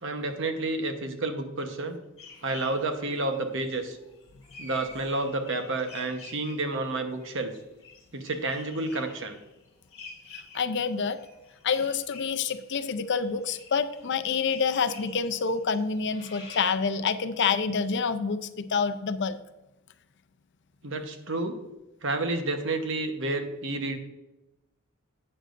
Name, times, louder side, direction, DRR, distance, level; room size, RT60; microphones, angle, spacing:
voice 1, 0.0-2.0 2.4-4.0 4.6-7.5 8.1-9.3 20.8-21.5 22.0-24.0, right 2 dB, 60° right, 6 dB, 1.1 m, -30 dB
sound 1, 2.2-6.9 7.2-16.7, left 3 dB, 25° left, 2.4 m, -49 dB
voice 2, 10.3-11.2 11.6-19.4, left 5 dB, 55° left, 11 dB, 0.5 m, -27 dB
11.5 x 8.7 x 2.6 m, 1.0 s
head